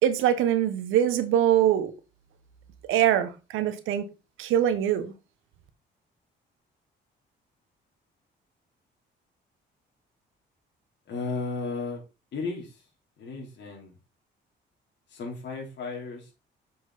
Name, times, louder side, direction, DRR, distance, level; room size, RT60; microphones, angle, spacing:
voice 1, 0.0-1.9 2.9-4.1 4.4-5.1, right 10 dB, 90° right, 1.1 m, -23 dB
voice 2, 11.1-12.0 12.3-12.8 13.2-13.9 15.1-16.3, left 4 dB, 65° left, 3.5 m, -34 dB
7.8 x 6.0 x 4.0 m
cardioid pair, 90°, 20 cm